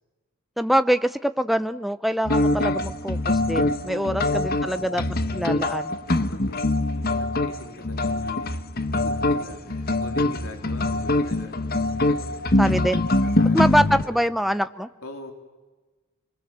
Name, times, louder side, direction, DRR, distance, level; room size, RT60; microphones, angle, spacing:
voice 1, 0.6-5.0 5.3-5.9 12.6-13.1 13.5-14.9, equal, ahead, 11 dB, 0.7 m, -24 dB
sound 1, 2.2-14.1, left 2 dB, 45° left, 1.2 m, -24 dB
voice 2, 3.9-5.0 6.1-8.6 8.9-11.6 12.1-12.5 13.2-14.2 15.0-15.3, left 2 dB, 80° left, 4 dB, 3.3 m, -42 dB
29.0 x 22.5 x 7.6 m, 1.2 s
head